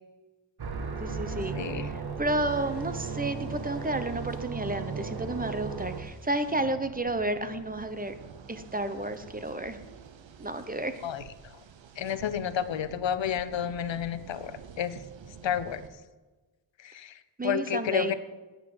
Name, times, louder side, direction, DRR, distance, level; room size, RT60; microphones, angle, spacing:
sound 1, 0.6-6.0, right 5 dB, 55° right, 1.5 m, -35 dB
voice 1, 1.0-8.2 8.5-9.8 10.4-11.0 17.4-18.1, right 2 dB, 20° right, 10 dB, 0.9 m, -31 dB
voice 2, 1.5-1.9 11.0-11.5 12.0-15.0 15.4-15.8 16.8-18.1, left 9 dB, 75° left, 13 dB, 0.8 m, -31 dB
sound 2, 2.5-15.9, right 7 dB, 85° right, 1.0 m, -50 dB
9.4 x 9.3 x 7.9 m, 1.2 s
wide cardioid pair, 110°, 45 cm